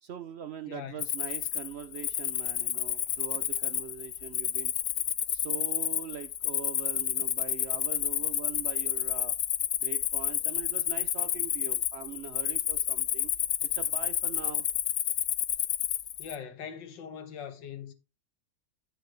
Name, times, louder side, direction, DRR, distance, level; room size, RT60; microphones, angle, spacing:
voice 1, 0.0-4.7 5.3-9.4 9.8-13.3 13.7-14.6, right 8 dB, 75° right, 0.6 m, -42 dB
voice 2, 0.7-1.0 16.2-17.9, left 8 dB, 85° left, 1.9 m, -41 dB
Cricket, 1.0-16.4, left 11 dB, 65° left, 1.2 m, -30 dB
10.5 x 6.8 x 3.3 m
omnidirectional pair, 1.9 m